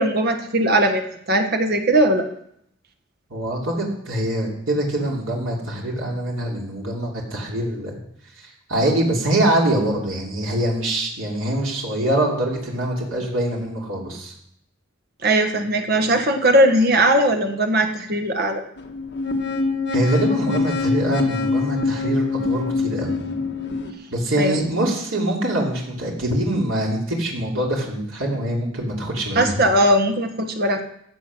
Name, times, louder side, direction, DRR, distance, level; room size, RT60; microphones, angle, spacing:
voice 1, 0.0-2.3 15.2-18.6 24.4-24.6 29.3-30.8, right 1 dB, 50° right, 6 dB, 1.4 m, -19 dB
voice 2, 3.3-8.0 8.4-14.3 19.9-23.2 24.1-29.6, right 1 dB, 80° right, -2 dB, 3.0 m, -24 dB
sound 1, 18.8-23.9, left 4 dB, 55° left, 1.5 m, -24 dB
15.5 x 7.3 x 6.2 m, 0.73 s
head